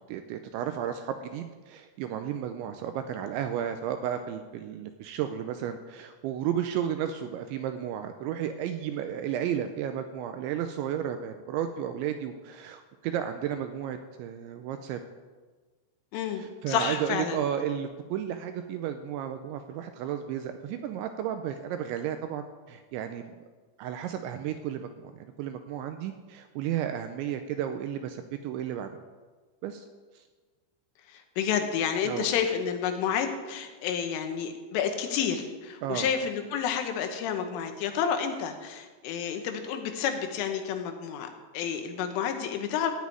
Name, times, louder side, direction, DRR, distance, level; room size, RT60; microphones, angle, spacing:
voice 1, 0.1-15.0 16.3-23.4 23.8-29.0 29.6-29.8 30.2-30.3 32.0-32.3 35.8-36.1, right 9 dB, 80° right, 7 dB, 2.7 m, -33 dB
voice 2, 16.1-17.4 31.1-41.3 41.5-42.9, left 8 dB, 80° left, 6 dB, 3.6 m, -30 dB
15.5 x 6.3 x 9.4 m, 1.4 s
omnidirectional pair, 5.8 m